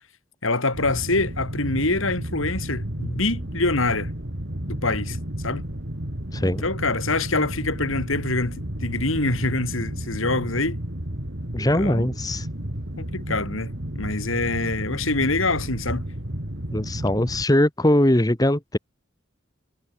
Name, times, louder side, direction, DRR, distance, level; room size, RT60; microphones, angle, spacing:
voice 1, 0.4-4.1 4.7-5.2 5.4-5.6 6.4-10.8 11.7-12.1 13.0-16.1, left 2 dB, 75° left, 3.9 m, -25 dB
sound 1, 0.7-17.4, right 1 dB, 55° right, 3.4 m, -32 dB
voice 2, 6.3-6.6 11.5-12.5 16.7-18.8, left 1 dB, 15° left, 1.3 m, -21 dB
head